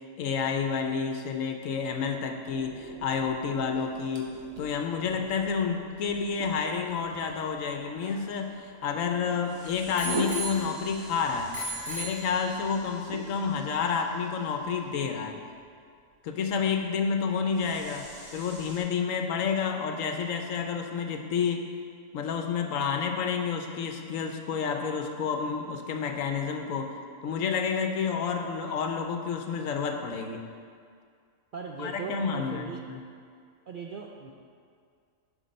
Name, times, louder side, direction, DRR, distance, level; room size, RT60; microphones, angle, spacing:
voice 1, 0.2-4.3 4.6-11.5 11.9-15.4 16.2-18.1 18.3-21.7 22.1-30.4 31.8-33.0, left 6 dB, 75° left, 5 dB, 1.1 m, -30 dB
sound 1, 2.5-8.9 9.4-14.9 17.5-18.8, equal, 5° right, 1.7 m, -51 dB
sound 2, 3.7-17.7, right 2 dB, 85° right, 1.3 m, -44 dB
Bicycle bell, 7.7-9.3 10.0-11.1 11.5-12.8 13.5-13.6, right 1 dB, 35° right, 1.0 m, -38 dB
voice 2, 31.5-32.8 33.7-34.3, right 4 dB, 65° right, 0 dB, 0.5 m, -39 dB
10.0 x 4.4 x 5.2 m, 2.2 s
omnidirectional pair, 1.4 m